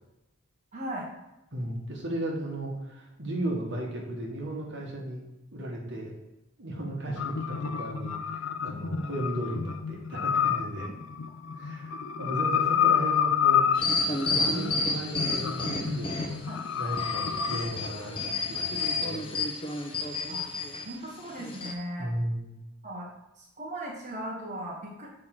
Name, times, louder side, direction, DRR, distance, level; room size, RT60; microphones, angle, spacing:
voice 1, 0.7-1.1 16.5-16.6 20.3-20.5 20.8-22.1 22.8-23.1 23.4-25.1, right 1 dB, 35° right, -3 dB, 1.2 m, -37 dB
voice 2, 1.5-5.2 5.5-6.2 6.6-10.9 11.6-11.9 12.2-14.0 14.2-16.4 16.7-19.3 22.0-22.5, right 1 dB, 60° right, 0 dB, 1.7 m, -35 dB
sound 1, 7.2-17.6, left 8 dB, 70° left, 0.5 m, -29 dB
sound 2, 13.7-16.5 16.9-20.8 21.4-21.7, left 3 dB, 25° left, 1.0 m, -30 dB
7.6 x 4.6 x 6.0 m, 0.94 s
head